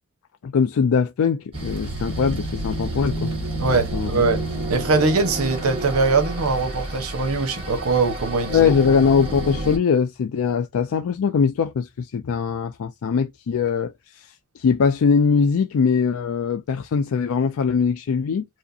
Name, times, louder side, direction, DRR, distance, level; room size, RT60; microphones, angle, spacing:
voice 1, 0.4-3.3 3.9-4.2 8.5-18.5, left 6 dB, 70° left, 0.4 m, -21 dB
sound 1, 1.5-9.8, right 1 dB, 25° right, 1.7 m, -30 dB
voice 2, 3.6-4.4 4.7-8.7, right 3 dB, 80° right, 1.1 m, -21 dB
4.7 x 2.1 x 2.6 m
head